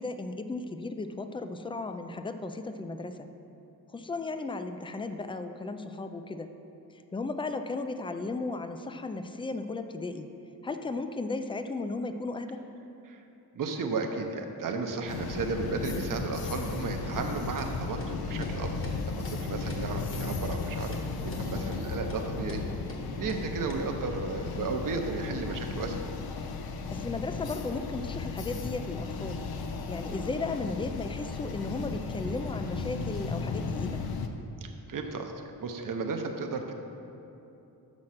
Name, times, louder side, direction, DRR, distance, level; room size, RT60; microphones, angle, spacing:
voice 1, 0.0-3.3 3.9-6.5 7.1-10.3 10.6-12.6 21.5-21.8 26.9-29.5 29.9-34.1, left 3 dB, 15° left, 8 dB, 0.3 m, -35 dB
voice 2, 13.5-18.7 19.0-22.6 23.2-26.0 34.6-36.7, right 4 dB, 55° right, 4 dB, 0.8 m, -34 dB
sound 1, 15.1-34.3, left 4 dB, 70° left, 0.6 m, -35 dB
sound 2, 17.2-17.3 17.6-17.7 18.0-18.1 18.4-18.5 18.8-19.0 19.2-19.4 19.7-19.8 20.1-20.2 20.5-20.6 20.9-21.0 21.3-21.4 21.7-21.8 22.1-22.2 22.5-22.6 22.9-23.0 23.3-23.4 23.7-23.8, equal, 35° left, 1.2 m, -43 dB
6.4 x 6.1 x 5.7 m, 2.9 s
wide cardioid pair, 105°, 38 cm